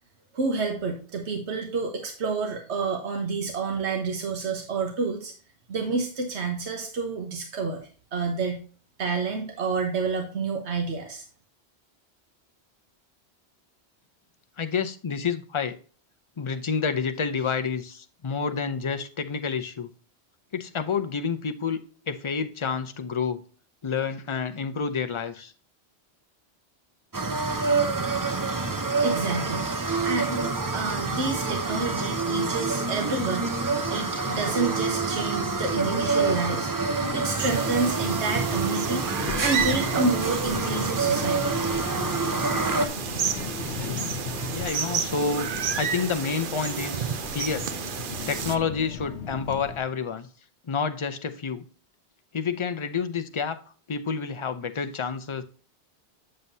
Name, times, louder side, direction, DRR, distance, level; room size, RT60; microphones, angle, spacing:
voice 1, 0.3-5.3 5.7-8.6 9.0-11.2 29.0-29.7 30.0-33.5 33.9-39.1 39.4-41.5, right 4 dB, 90° right, 1.4 m, -29 dB
voice 2, 14.6-15.8 16.4-19.9 20.5-21.8 22.1-23.4 23.8-25.5 44.5-45.5 45.8-47.8 48.3-50.3 50.6-51.6 52.3-53.6 53.9-55.4, left 5 dB, 35° left, 0.5 m, -29 dB
sound 1, 27.1-42.9, right 3 dB, 25° right, 0.5 m, -27 dB
sound 2, 37.4-48.6, right 7 dB, 55° right, 0.8 m, -31 dB
Child speech kid speaking, 39.0-49.8, left 6 dB, 85° left, 1.0 m, -38 dB
7.7 x 7.2 x 2.7 m
omnidirectional pair, 1.1 m